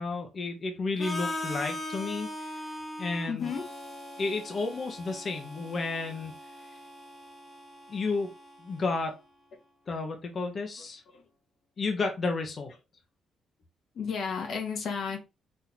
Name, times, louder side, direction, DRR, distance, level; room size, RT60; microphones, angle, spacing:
voice 1, 0.0-2.3 3.0-3.5 4.2-6.3 7.9-8.3 8.6-9.2 9.9-11.0 11.8-12.7, left 3 dB, 45° left, 1.0 m, -32 dB
Harmonica, 1.0-8.9, left 1 dB, 25° left, 1.3 m, -40 dB
voice 2, 3.3-3.6 11.1-11.2 13.9-15.2, left 6 dB, 65° left, 1.1 m, -32 dB
4.3 x 3.7 x 2.8 m
cardioid pair, 90°, 0 cm